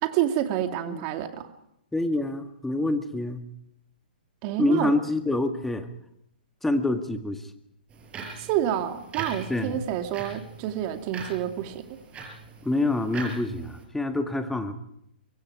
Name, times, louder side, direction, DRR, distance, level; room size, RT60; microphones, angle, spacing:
voice 1, 0.0-1.5 4.4-4.9 8.4-11.8, right 11 dB, 40° right, 6 dB, 2.4 m, -28 dB
voice 2, 1.9-3.4 4.6-5.9 6.6-7.5 9.5-9.8 12.6-14.8, left 2 dB, 5° left, 7 dB, 1.8 m, -26 dB
sound 1, 7.9-13.8, right 4 dB, 20° right, 5.9 m, -41 dB
24.0 x 23.0 x 4.8 m, 0.77 s
figure-of-eight pair, 120°, 5 cm